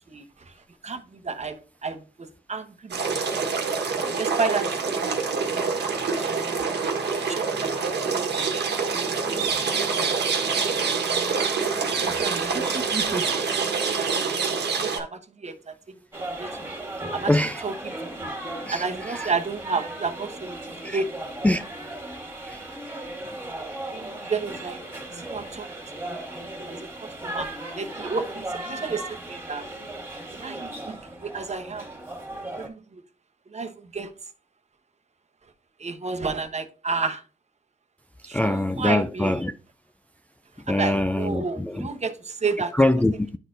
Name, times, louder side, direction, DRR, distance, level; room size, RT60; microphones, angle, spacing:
voice 1, 0.1-0.6 0.8-3.4 4.2-5.1 5.4-5.7 6.0-7.0 7.3-8.6 9.6-9.7 11.1-11.5 11.8-13.3 13.7-14.2 14.5-15.7 16.2-16.7 17.1-17.3 17.6-17.9 18.2-18.3 18.7-21.1 23.9-24.8 25.1-25.7 26.0-26.2 26.7-26.9 27.2-27.5 27.8-29.6 30.3-31.9 32.4-33.0 33.5-34.1 35.8-37.2 38.2-39.4 40.7-42.7, right 4 dB, 40° right, 1.0 m, -32 dB
sound 1, 2.9-15.0, right 5 dB, 75° right, 1.4 m, -26 dB
sound 2, 16.1-32.7, right 1 dB, 15° right, 1.9 m, -36 dB
voice 2, 17.3-17.6 18.7-19.3 20.8-21.0 21.4-21.6 22.4-22.6 38.3-39.5 40.6-41.9 42.7-43.4, left 1 dB, 10° left, 0.3 m, -24 dB
11.0 x 4.1 x 2.6 m
cardioid pair, 75°, 18 cm